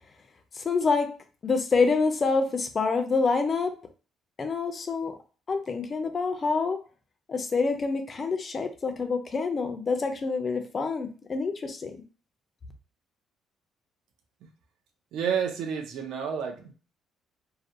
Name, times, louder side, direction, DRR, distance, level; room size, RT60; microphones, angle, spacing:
voice 1, 0.5-1.1 1.4-3.7 4.4-5.1 5.5-6.8 7.3-11.9, left 4 dB, 30° left, 6 dB, 0.4 m, -27 dB
voice 2, 15.1-16.7, right 7 dB, 70° right, 3 dB, 0.4 m, -30 dB
2.4 x 2.1 x 2.6 m, 0.37 s
cardioid pair, 145°, 0 cm